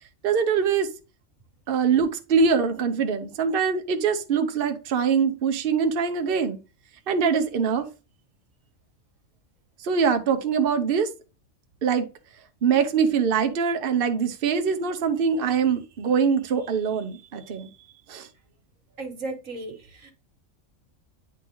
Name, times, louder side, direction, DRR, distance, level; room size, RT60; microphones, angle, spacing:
voice 1, 0.2-0.9 1.7-6.6 7.1-7.9 9.8-11.1 11.8-12.1 12.6-17.7 18.1-18.3, right 6 dB, 50° right, 1.0 m, -23 dB
voice 2, 19.0-20.1, right 2 dB, 90° right, 2.0 m, -35 dB
9.6 x 3.9 x 3.0 m
omnidirectional pair, 1.3 m